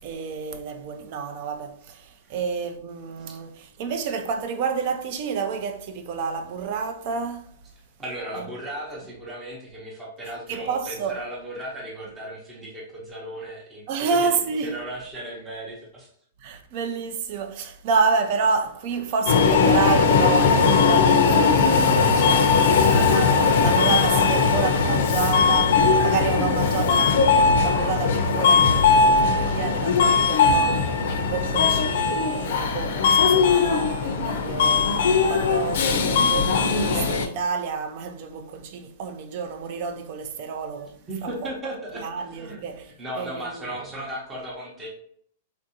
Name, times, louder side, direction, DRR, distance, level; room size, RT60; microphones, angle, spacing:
voice 1, 0.0-7.5 8.4-8.5 10.5-11.2 13.9-14.8 16.4-41.0 42.0-43.7, right 5 dB, 45° right, 0.5 m, -29 dB
voice 2, 8.0-14.3 14.6-16.1 24.0-24.4 41.1-44.9, right 1 dB, 15° right, 0.7 m, -36 dB
Subway metro underground, 19.3-37.3, left 5 dB, 65° left, 0.5 m, -19 dB
3.5 x 2.5 x 2.7 m
hypercardioid pair, 160°, 0 cm